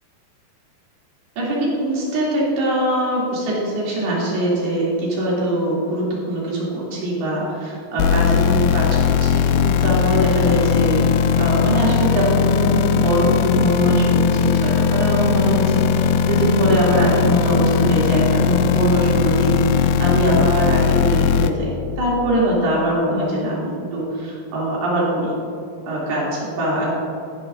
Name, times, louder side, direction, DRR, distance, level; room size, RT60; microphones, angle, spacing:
voice 1, 1.4-11.0 11.4-25.3 25.9-26.9, right 1 dB, 80° right, -6 dB, 4.6 m, -22 dB
sound 1, 8.0-21.5, left 7 dB, 80° left, 2.3 m, -18 dB
15.5 x 10.0 x 2.5 m, 2.7 s
omnidirectional pair, 4.5 m